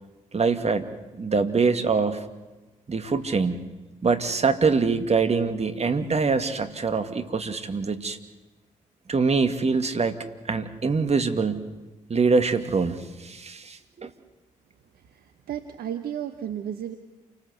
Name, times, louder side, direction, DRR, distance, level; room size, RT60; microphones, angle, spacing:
voice 1, 0.3-0.9 1.2-2.3 2.9-3.6 4.0-8.2 9.1-10.2 10.5-11.7 12.1-14.1, right 4 dB, 40° right, 8 dB, 2.3 m, -24 dB
voice 2, 14.9-17.0, right 10 dB, 70° right, 8 dB, 1.3 m, -34 dB
28.5 x 19.5 x 8.0 m, 1.1 s
hypercardioid pair, 40°, 16 cm